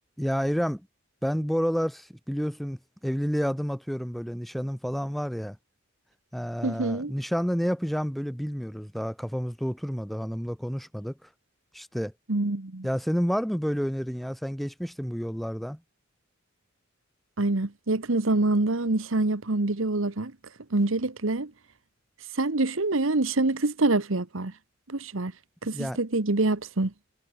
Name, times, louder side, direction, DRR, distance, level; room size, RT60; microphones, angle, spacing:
voice 1, 0.2-0.8 1.2-5.6 6.3-11.1 11.7-12.1 12.8-15.8 25.7-26.0, equal, ahead, 0.9 m, -29 dB
voice 2, 6.6-7.1 12.3-12.9 17.4-20.3 20.7-21.5 22.3-24.5 24.9-25.3 25.6-26.9, right 2 dB, 70° right, 1.3 m, -26 dB
head